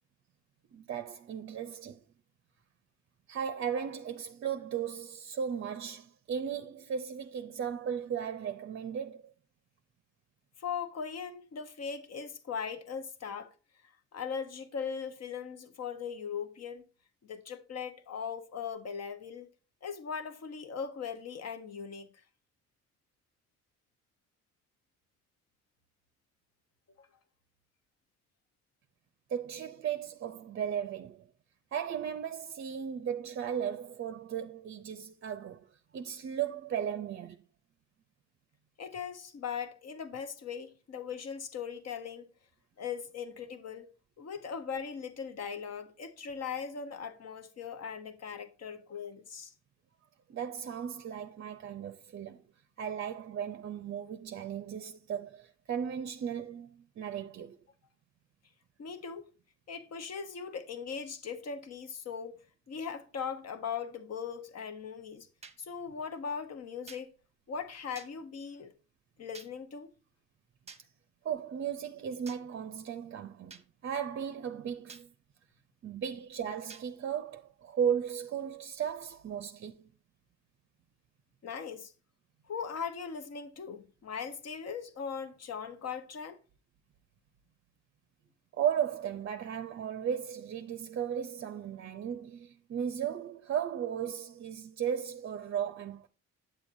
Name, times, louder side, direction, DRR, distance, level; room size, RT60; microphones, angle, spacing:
voice 1, 0.7-2.0 3.3-9.3 29.3-31.3 31.7-37.4 50.3-52.4 52.8-57.6 71.2-75.1 75.8-79.9 88.5-96.1, right 8 dB, 45° right, 0.5 m, -36 dB
voice 2, 10.6-13.5 13.8-16.9 17.2-19.5 19.8-22.2 27.0-27.1 38.8-42.3 42.8-43.9 44.2-49.5 58.8-59.3 59.7-62.4 62.7-65.3 65.6-67.1 67.5-68.7 69.2-69.9 81.4-81.9 82.5-86.4, left 6 dB, 55° left, 1.0 m, -39 dB
sound 1, 65.4-65.6 66.9-67.0 68.0-68.1 69.3-69.5 70.7-70.8 72.3-72.4 73.5-73.7 74.9-75.1 76.7-76.9, right 4 dB, 20° right, 0.8 m, -49 dB
8.7 x 7.1 x 2.6 m
cardioid pair, 90°, 30 cm